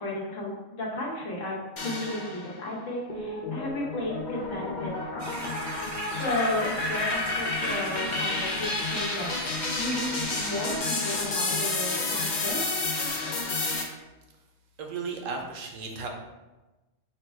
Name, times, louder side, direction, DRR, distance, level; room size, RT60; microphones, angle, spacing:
voice 1, 0.0-1.6 1.8-5.5 6.2-9.3 9.7-12.6, left 1 dB, 80° left, -4 dB, 1.4 m, -33 dB
sound 1, 1.8-2.6 3.1-13.8, left 3 dB, 50° left, 0.6 m, -30 dB
sound 2, 5.2-10.8, right 1 dB, 25° right, 0.4 m, -40 dB
voice 2, 14.8-16.1, right 4 dB, 90° right, 2 dB, 1.1 m, -35 dB
4.3 x 2.2 x 4.3 m, 1.1 s
omnidirectional pair, 1.3 m